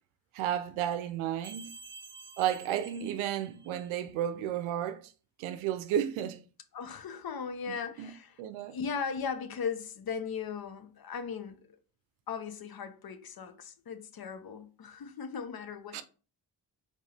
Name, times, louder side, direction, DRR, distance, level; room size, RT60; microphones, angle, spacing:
voice 1, 0.3-1.7 2.4-5.0 5.4-6.4 7.7-8.1 8.4-8.8 15.9-16.0, right 10 dB, 90° right, 0.6 m, -32 dB
sound 1, 1.4-4.0, right 4 dB, 25° right, 1.0 m, -50 dB
voice 2, 6.7-8.4 8.7-11.6 12.3-16.0, left 6 dB, 50° left, 0.8 m, -38 dB
4.4 x 3.2 x 3.3 m
supercardioid pair, 50°, 46 cm